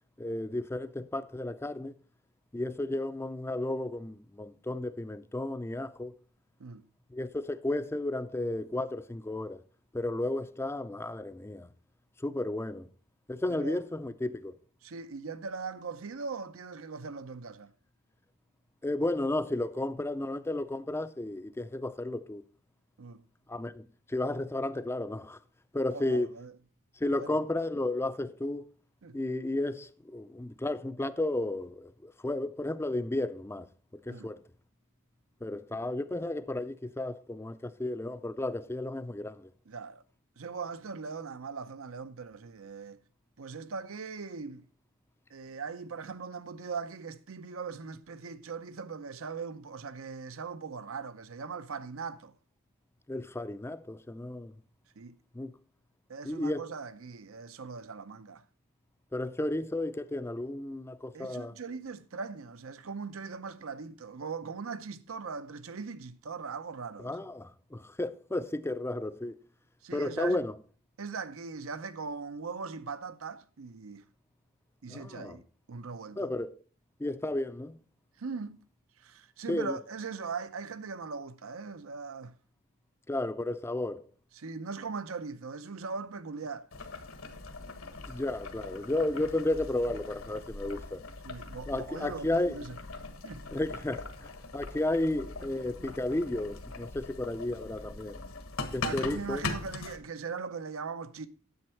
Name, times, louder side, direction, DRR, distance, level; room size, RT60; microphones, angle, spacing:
voice 1, 0.2-1.9 2.5-6.1 7.1-9.6 9.9-11.7 12.2-12.9 13.3-14.5 18.8-22.4 23.5-25.4 25.7-26.3 27.0-28.7 29.1-33.7 34.1-34.4 35.4-39.5 53.1-54.5 55.3-55.6 56.2-56.6 59.1-61.5 67.0-69.4 69.9-70.6 74.9-75.4 76.2-76.6 77.0-77.8 79.5-79.8 83.1-84.1 88.1-91.0 91.7-92.6 93.5-98.2 98.7-99.4, left 2 dB, 10° left, 0.4 m, -33 dB
voice 2, 14.8-17.7 23.0-23.3 25.9-26.5 27.2-27.4 29.0-29.2 34.1-34.3 39.7-40.0 40.4-43.0 43.4-44.6 45.3-52.3 55.0-55.2 56.1-58.4 61.1-67.2 69.8-70.4 71.0-74.0 74.8-75.4 75.7-76.3 78.2-78.6 79.0-82.4 84.3-86.7 91.2-92.8 93.2-93.5 98.8-101.3, right 5 dB, 75° right, 0.7 m, -40 dB
Boiling, 86.7-100.0, left 3 dB, 75° left, 1.3 m, -41 dB
9.5 x 7.9 x 4.4 m
head